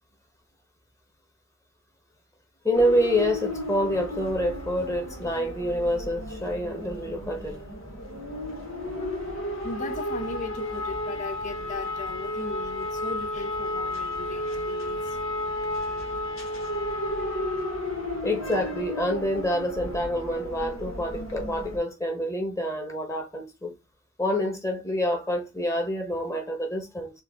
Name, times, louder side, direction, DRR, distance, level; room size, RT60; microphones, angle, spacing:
voice 1, 2.6-7.6 18.2-23.7 24.2-27.1, equal, 15° left, 1.1 m, -27 dB
sound 1, 2.7-21.8, left 1 dB, 80° left, 1.6 m, -33 dB
voice 2, 9.0-15.2, left 3 dB, 35° left, 0.4 m, -38 dB
4.4 x 2.5 x 3.6 m
head